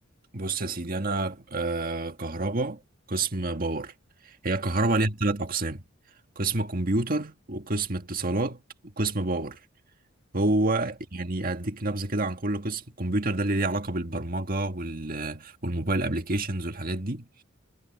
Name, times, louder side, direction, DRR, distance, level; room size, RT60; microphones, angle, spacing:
voice 1, 0.3-2.8 3.1-3.9 4.2-5.8 6.4-8.6 9.0-9.6 10.3-17.4, right 2 dB, 45° right, 1.8 m, -28 dB
head